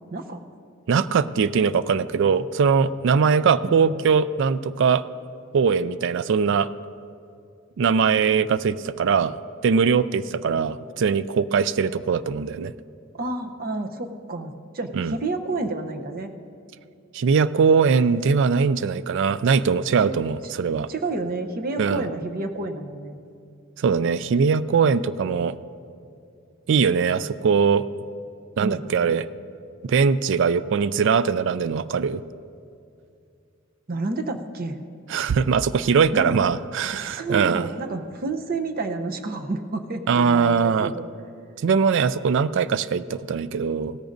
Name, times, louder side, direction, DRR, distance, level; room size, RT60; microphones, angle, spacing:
voice 1, 0.1-0.4 13.2-16.3 20.0-20.2 20.9-23.2 28.6-28.8 33.9-34.8 36.1-36.3 36.9-41.1, right 3 dB, 45° right, 6 dB, 0.7 m, -30 dB
voice 2, 0.9-5.0 5.5-6.7 7.8-9.3 9.6-12.7 14.9-15.1 17.1-20.9 21.8-22.1 23.8-25.6 26.7-27.8 28.6-29.3 29.8-32.2 35.1-37.7 40.1-40.9 41.6-44.0, right 6 dB, 65° right, 16 dB, 0.3 m, -21 dB
17.0 x 13.5 x 2.6 m, 2.5 s
head